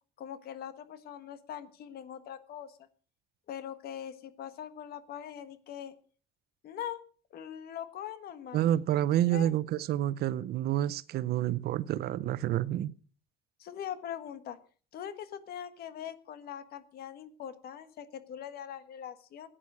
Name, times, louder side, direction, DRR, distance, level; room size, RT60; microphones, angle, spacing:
voice 1, 0.2-2.8 3.5-5.9 6.6-7.0 7.3-8.6 9.1-9.5 13.6-14.6 14.9-19.5, left 9 dB, 65° left, 1.6 m, -42 dB
voice 2, 8.5-12.9, right 12 dB, 70° right, 0.8 m, -28 dB
15.5 x 10.0 x 6.2 m
cardioid pair, 110°, 17 cm